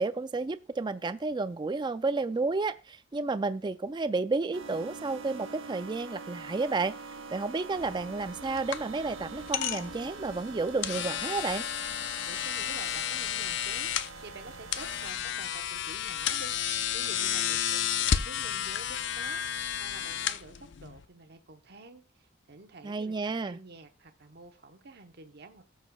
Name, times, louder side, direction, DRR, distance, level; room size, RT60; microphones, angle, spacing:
voice 1, 0.0-6.9 7.3-11.6 22.8-23.6, right 3 dB, 25° right, 0.4 m, -31 dB
sound 1, 4.5-15.1, right 4 dB, 85° right, 1.0 m, -44 dB
sound 2, 7.8-21.0, left 9 dB, 60° left, 0.5 m, -32 dB
voice 2, 12.2-23.2 23.4-25.6, right 3 dB, 55° right, 0.9 m, -49 dB
18.0 x 6.4 x 2.3 m
head